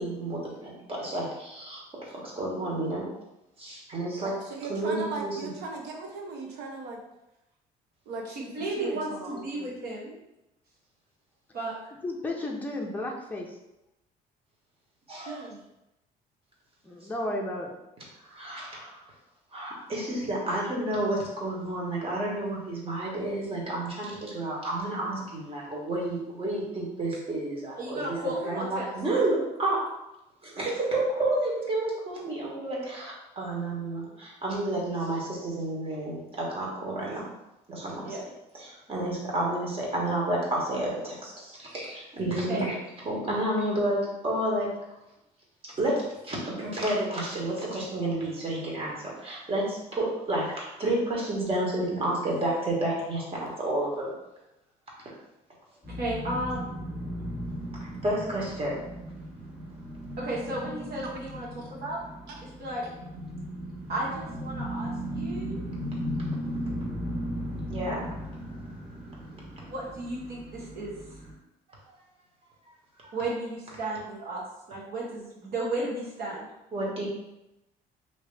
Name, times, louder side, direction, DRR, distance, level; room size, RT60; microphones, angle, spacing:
voice 1, 0.0-3.0 3.6-4.3 4.7-5.5 15.1-15.4 18.3-19.0 19.5-28.2 28.5-29.8 30.4-37.3 37.7-38.2 38.5-42.7 43.0-44.7 45.6-45.9 46.2-54.1 57.8-58.8 67.7-68.0 71.9-72.0 73.0-73.1 76.7-77.1, right 1 dB, 35° right, -4 dB, 1.2 m, -30 dB
voice 2, 4.2-7.0 8.1-9.4 15.3-15.6 61.0-61.1 62.3-62.4, right 3 dB, 85° right, 1 dB, 0.7 m, -38 dB
voice 3, 8.3-10.1 11.5-11.7 27.8-28.9 38.0-38.2 38.7-38.8 42.5-42.6 56.0-56.7 60.2-62.0 62.6-62.9 63.9-65.6 69.6-70.9 73.1-74.4 74.7-76.5, right 1 dB, 65° right, -5 dB, 1.0 m, -33 dB
voice 4, 12.0-13.6 16.8-17.7 68.9-69.0, left 1 dB, 10° left, -1 dB, 0.6 m, -33 dB
sound 1, 55.8-71.3, equal, 5° right, 1.1 m, -36 dB
2.9 x 2.8 x 3.3 m, 0.91 s
cardioid pair, 110°, 17 cm